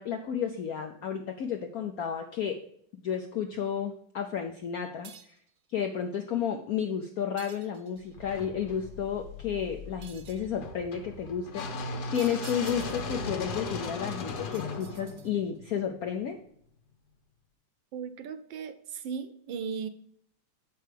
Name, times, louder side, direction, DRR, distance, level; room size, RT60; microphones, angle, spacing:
voice 1, 0.0-2.6 3.0-5.3 5.7-16.4, left 8 dB, 75° left, 4 dB, 0.8 m, -32 dB
sound 1, 5.0-5.5 7.4-8.1 10.0-10.5 12.1-13.2 14.5-15.6, right 7 dB, 55° right, 1.0 m, -50 dB
sound 2, 8.1-16.2, left 3 dB, 55° left, 1.4 m, -38 dB
voice 2, 17.9-19.9, right 6 dB, 75° right, 12 dB, 1.4 m, -37 dB
7.7 x 5.5 x 5.0 m, 0.68 s
omnidirectional pair, 2.3 m